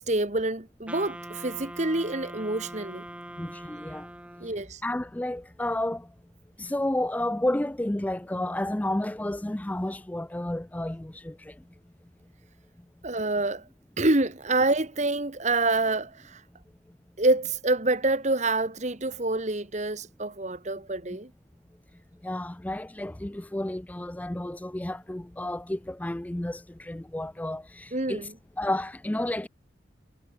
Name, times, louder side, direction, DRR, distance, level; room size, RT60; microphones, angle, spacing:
voice 1, 0.0-3.0 4.4-4.8 13.0-13.6 14.0-16.4 17.2-21.3 27.9-28.3, right 2 dB, 40° right, 1.8 m, -27 dB
Wind instrument woodwind instrument, 0.9-4.7, right 1 dB, 5° right, 2.8 m, -42 dB
voice 2, 3.4-4.1 4.8-6.1 6.6-11.6 22.2-28.3 28.6-29.5, left 1 dB, 10° left, 0.4 m, -31 dB
head